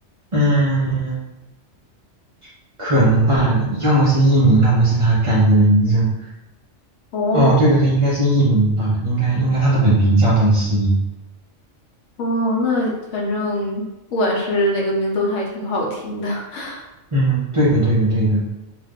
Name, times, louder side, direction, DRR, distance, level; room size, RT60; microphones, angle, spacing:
voice 1, 0.3-1.3 2.8-6.3 7.3-11.0 17.1-18.4, right 1 dB, 40° right, -8 dB, 0.4 m, -17 dB
voice 2, 7.1-7.5 12.2-13.8 14.1-16.9, left 1 dB, 75° left, -1 dB, 1.0 m, -22 dB
2.5 x 2.3 x 3.5 m, 0.96 s
omnidirectional pair, 1.3 m